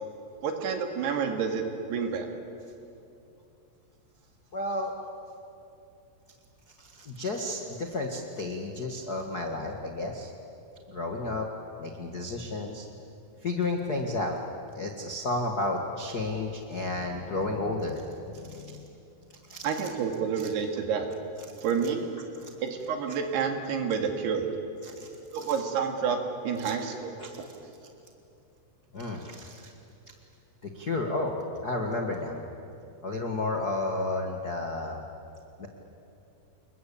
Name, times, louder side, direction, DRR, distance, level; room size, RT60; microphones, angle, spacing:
voice 1, 0.4-2.3 19.6-21.1 21.6-22.0 22.6-24.5 25.3-27.1, right 6 dB, 75° right, 4 dB, 4.2 m, -29 dB
voice 2, 4.5-4.9 6.8-10.3 10.9-11.5 11.8-12.9 13.4-14.4 14.7-18.8 19.5-19.7 20.4-20.5 22.4-22.5 24.8-25.1 25.3-25.4 26.6-26.7 27.2-27.3 28.9-29.7 30.6-31.3 31.6-32.4 33.0-35.0 35.6-35.7, left 2 dB, 80° left, 2 dB, 0.8 m, -32 dB
28.5 x 21.5 x 8.5 m, 2.7 s
omnidirectional pair, 4.9 m